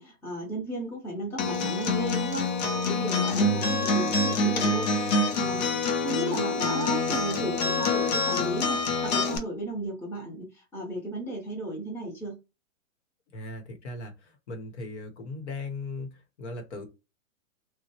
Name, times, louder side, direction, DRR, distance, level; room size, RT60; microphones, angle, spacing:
voice 1, 0.0-2.5 2.7-12.4, right 1 dB, 5° left, 0.8 m, -35 dB
Acoustic guitar, 1.4-9.4, left 3 dB, 35° left, 0.4 m, -26 dB
voice 2, 13.3-16.8, left 2 dB, 55° left, 1.0 m, -38 dB
2.9 x 2.2 x 2.8 m
hypercardioid pair, 135°, 40 cm